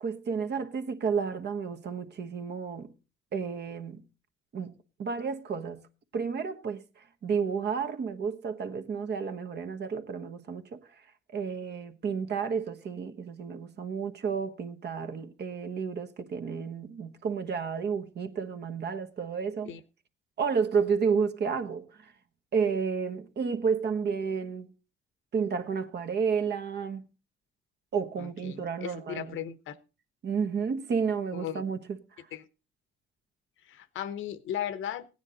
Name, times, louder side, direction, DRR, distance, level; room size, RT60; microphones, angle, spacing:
voice 1, 0.0-2.9 3.3-4.0 4.5-4.7 5.0-5.8 6.1-6.8 7.2-10.8 11.3-19.7 20.4-22.1 22.5-24.7 25.3-27.1 27.9-29.4 30.2-32.0, right 6 dB, 55° right, 1.3 m, -31 dB
voice 2, 28.2-29.8 31.3-31.6 32.3-32.4 33.6-35.1, left 10 dB, 80° left, 1.0 m, -36 dB
16.0 x 9.6 x 4.0 m
cardioid pair, 90°, 20 cm